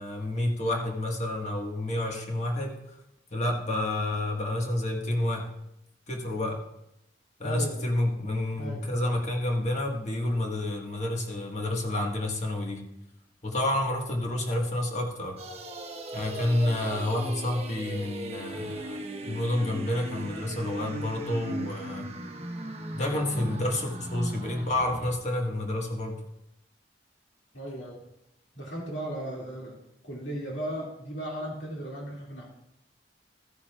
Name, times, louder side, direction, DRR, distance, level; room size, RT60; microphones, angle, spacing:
voice 1, 0.0-2.8 3.3-5.5 6.1-6.6 7.4-12.8 13.4-15.4 16.1-19.0 19.3-22.1 22.9-26.2, left 1 dB, 40° left, 1 dB, 1.6 m, -29 dB
voice 2, 7.4-7.9 8.6-8.8 27.5-28.0 28.6-29.8 30.0-32.4, right 1 dB, 85° left, -2 dB, 2.3 m, -36 dB
sound 1, 15.4-25.1, right 1 dB, 35° right, 1.0 m, -38 dB
14.5 x 9.9 x 2.4 m, 0.83 s
head